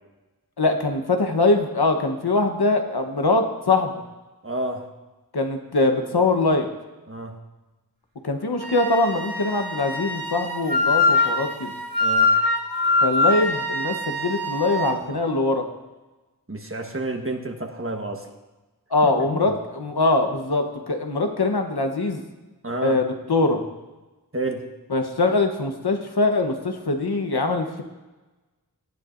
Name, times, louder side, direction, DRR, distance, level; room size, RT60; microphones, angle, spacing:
voice 1, 0.6-3.9 5.3-6.7 8.2-11.7 13.0-15.7 18.9-22.2 22.8-23.6 24.9-27.8, left 2 dB, 90° left, 5 dB, 1.1 m, -22 dB
voice 2, 4.4-4.9 7.1-7.4 12.0-12.3 16.5-18.3 19.0-19.6 22.6-23.0 24.3-24.6, right 2 dB, 35° right, 3 dB, 1.3 m, -30 dB
Wind instrument woodwind instrument, 8.6-15.0, left 2 dB, 65° right, 1.5 m, -23 dB
17.5 x 9.6 x 2.6 m, 1.1 s
wide cardioid pair, 45°, 38 cm